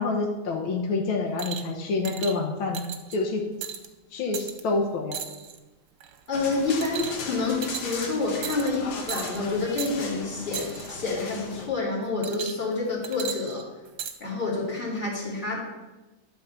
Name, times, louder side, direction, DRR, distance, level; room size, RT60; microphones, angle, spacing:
voice 1, 0.0-2.8 3.1-3.4 4.1-5.2, left 3 dB, 85° left, 1 dB, 1.9 m, -27 dB
sound 1, 1.4-1.7 2.1-2.4 2.7-3.2 3.6-3.9 4.3-4.6 5.1-5.6 6.0-6.3 6.8-7.3 7.6-8.0 8.4-8.8 9.1-9.4 9.8-9.9 10.5-10.9 12.2-12.7 13.0-14.2 15.0-15.1, right 9 dB, 65° right, 1.2 m, -36 dB
sound 2, 6.3-11.7, left 4 dB, 60° left, 1.5 m, -38 dB
voice 2, 6.3-13.6 14.2-15.6, left 3 dB, 25° left, -5 dB, 2.6 m, -28 dB
12.0 x 4.0 x 6.8 m, 1.1 s
omnidirectional pair, 2.2 m